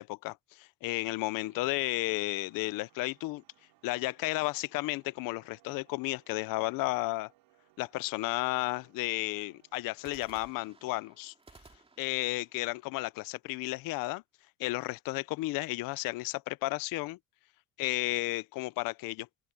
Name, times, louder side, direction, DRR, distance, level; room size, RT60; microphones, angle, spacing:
voice 1, 0.0-3.4 3.8-7.3 7.8-11.3 12.0-14.2 14.6-17.2 17.8-19.3, left 21 dB, 55° left, 0.5 m, -33 dB
sound 1, 1.4-10.1, right 19 dB, 80° right, 4.7 m, -67 dB
sound 2, 1.7-3.2 10.0-13.9, right 3 dB, 15° right, 2.4 m, -60 dB
open air
cardioid pair, 145°, 41 cm